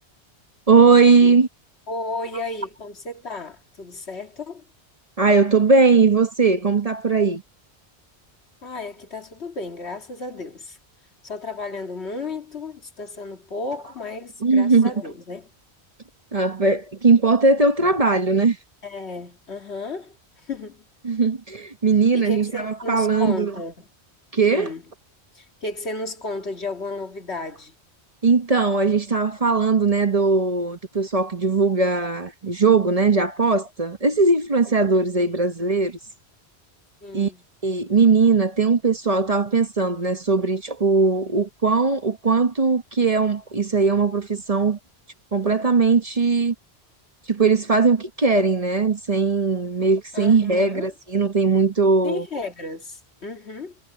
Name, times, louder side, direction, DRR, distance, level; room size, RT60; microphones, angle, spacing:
voice 1, 0.7-1.5 5.2-7.4 14.4-14.9 16.3-18.6 21.0-23.5 24.3-24.7 28.2-36.0 37.1-37.3 37.6-44.8 45.3-46.5 47.3-52.2, right 4 dB, 35° right, 1.1 m, -19 dB
voice 2, 1.9-4.6 8.6-10.8 11.2-15.5 18.8-20.9 22.1-23.9 24.4-24.8 25.3-27.7 35.0-35.1 37.0-37.4 50.1-50.9 52.0-53.8, left 3 dB, 75° left, 2.4 m, -33 dB
omnidirectional pair, 1.1 m